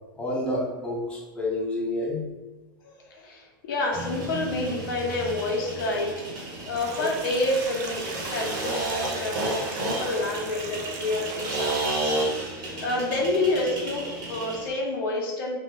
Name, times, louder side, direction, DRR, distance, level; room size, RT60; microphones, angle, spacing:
voice 1, 0.1-2.2, left 1 dB, 10° left, -5 dB, 0.7 m, -29 dB
voice 2, 2.8-6.3 6.7-12.2 12.8-15.6, left 2 dB, 70° left, -1 dB, 0.6 m, -28 dB
sound 1, 3.9-14.7, right 2 dB, 35° right, 0.9 m, -32 dB
sound 2, 6.8-11.9, right 5 dB, 50° right, 0.3 m, -39 dB
2.1 x 2.0 x 2.8 m, 1.2 s
hypercardioid pair, 110°, 12 cm